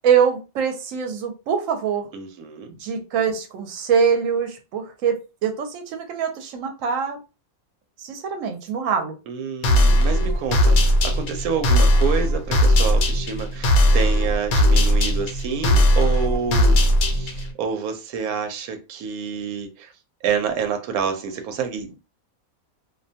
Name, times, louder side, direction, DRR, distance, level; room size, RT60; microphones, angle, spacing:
voice 1, 0.0-2.1 2.8-7.2 8.0-9.1, right 7 dB, 70° right, 1.0 m, -23 dB
voice 2, 2.1-2.7 9.3-16.8 17.1-19.9 20.2-21.9, right 6 dB, 90° right, 1.0 m, -28 dB
sound 1, 9.6-17.5, equal, 90° left, 1.1 m, -18 dB
2.6 x 2.2 x 2.7 m
omnidirectional pair, 1.5 m